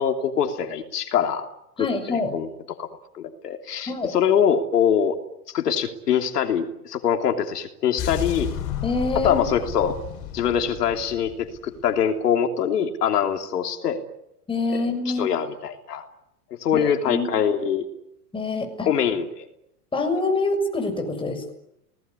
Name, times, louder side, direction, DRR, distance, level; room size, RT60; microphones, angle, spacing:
voice 1, 0.0-1.5 1.8-2.5 2.8-2.9 3.1-5.1 5.5-8.5 9.2-10.0 10.3-14.0 14.7-16.0 16.6-17.9 18.9-19.5, left 8 dB, 80° left, 5 dB, 3.2 m, -23 dB
voice 2, 1.8-2.3 3.9-4.1 8.8-9.4 14.5-15.4 16.7-17.4 18.3-18.9 19.9-21.5, left 3 dB, 10° left, 4 dB, 6.6 m, -26 dB
sound 1, 8.0-12.1, left 10 dB, 45° left, 7.1 m, -32 dB
28.5 x 19.5 x 9.8 m, 0.84 s
hypercardioid pair, 125°, 46 cm